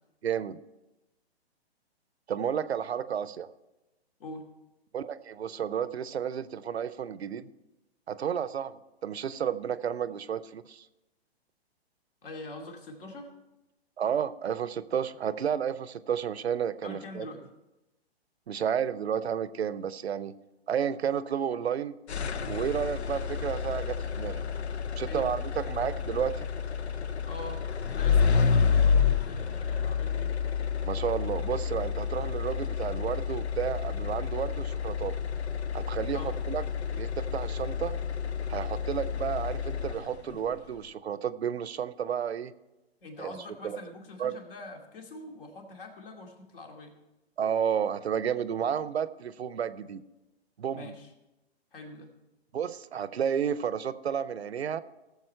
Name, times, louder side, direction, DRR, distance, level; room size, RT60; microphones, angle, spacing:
voice 1, 0.2-0.6 2.3-3.5 4.9-7.5 8.1-10.9 14.0-17.3 18.5-20.3 20.7-21.9 22.5-24.4 25.0-26.5 30.8-35.1 35.7-36.6 36.9-38.0 38.5-42.5 43.2-43.4 43.6-43.8 44.2-44.4 47.4-50.0 50.6-50.9 52.5-54.8, right 8 dB, 75° right, 16 dB, 0.6 m, -31 dB
voice 2, 12.2-13.3 16.8-17.5 25.0-25.3 27.3-27.6 27.9-30.4 36.1-36.4 43.0-46.9 50.7-51.1 51.7-52.1, left 2 dB, 55° left, 3 dB, 2.4 m, -44 dB
sound 1, 22.1-40.4, left 6 dB, 80° left, 0.7 m, -29 dB
17.0 x 7.2 x 4.5 m, 1.0 s
figure-of-eight pair, 130°, 32 cm